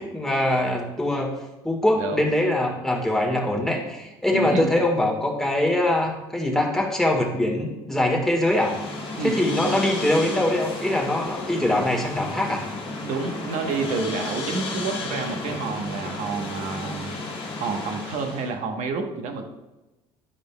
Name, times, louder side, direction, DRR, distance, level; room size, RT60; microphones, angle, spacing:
voice 1, 0.0-1.4 1.6-8.7 9.2-12.7, left 1 dB, 5° left, -1 dB, 1.5 m, -23 dB
voice 2, 4.3-4.8 9.2-9.8 13.0-17.1 17.6-19.5, right 4 dB, 65° right, 4 dB, 1.1 m, -29 dB
sound 1, 8.4-18.5, left 3 dB, 40° left, 1.5 m, -33 dB
10.0 x 5.1 x 2.2 m, 1.0 s
supercardioid pair, 95°, 13 cm